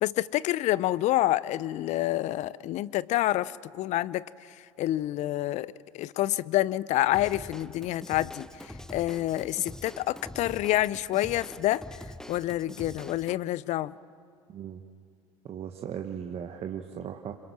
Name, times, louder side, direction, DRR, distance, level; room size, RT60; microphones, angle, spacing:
voice 1, 0.0-4.2 4.8-5.7 5.9-11.8 12.3-13.9, left 15 dB, 50° left, 20 dB, 0.6 m, -28 dB
Drum kit / Drum, 7.1-13.4, left 1 dB, 5° left, 0.8 m, -44 dB
voice 2, 14.5-14.8 15.4-17.3, right 8 dB, 40° right, 4 dB, 1.3 m, -37 dB
26.5 x 26.5 x 6.3 m, 2.3 s
hypercardioid pair, 75°, 16 cm